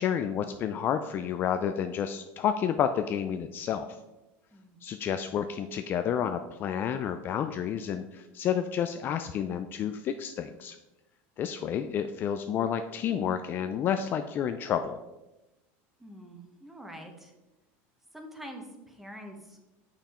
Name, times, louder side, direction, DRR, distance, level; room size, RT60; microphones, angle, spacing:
voice 1, 0.0-4.0 4.8-10.8 11.4-15.0, left 8 dB, 30° left, 8 dB, 0.3 m, -30 dB
voice 2, 16.0-17.3 18.1-19.7, equal, 5° right, 3 dB, 1.0 m, -46 dB
7.0 x 5.7 x 4.3 m, 1.0 s
supercardioid pair, 150°, 7 cm